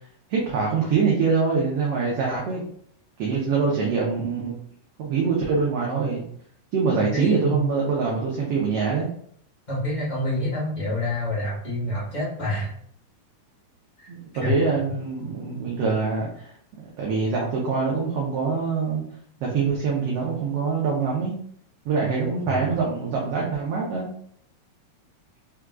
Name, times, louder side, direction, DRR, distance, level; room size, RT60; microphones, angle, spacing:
voice 1, 0.3-2.7 3.2-4.5 5.0-6.2 6.7-9.1 14.1-16.5 17.0-19.0 19.4-21.4 21.8-24.1, right 5 dB, 70° right, -3 dB, 1.5 m, -24 dB
voice 2, 7.0-7.6 9.7-12.7 14.0-14.1 14.4-14.5 22.5-22.7, left 1 dB, 80° left, -8 dB, 0.4 m, -27 dB
4.7 x 3.5 x 2.3 m, 0.63 s
omnidirectional pair, 3.4 m